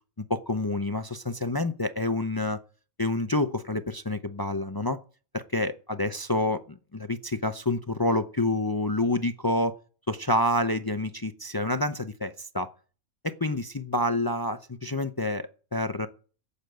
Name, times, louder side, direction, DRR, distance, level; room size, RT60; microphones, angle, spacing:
voice 1, 0.3-2.6 3.0-5.0 5.3-6.6 6.9-9.7 10.1-12.7 13.2-16.1, left 1 dB, 35° left, 10 dB, 0.3 m, -28 dB
12.0 x 8.4 x 7.9 m, 0.39 s
omnidirectional pair, 1.5 m